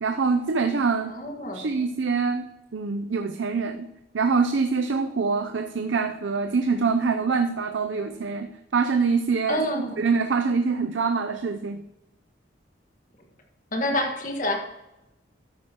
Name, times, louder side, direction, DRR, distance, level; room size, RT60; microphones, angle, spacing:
voice 1, 0.0-1.2 1.5-2.4 2.7-3.9 4.1-11.8, right 4 dB, 80° right, 7 dB, 0.5 m, -25 dB
voice 2, 1.1-1.9 9.5-10.1 13.7-14.6, left 1 dB, 45° left, 2 dB, 1.6 m, -28 dB
13.0 x 9.3 x 3.0 m, 0.94 s
head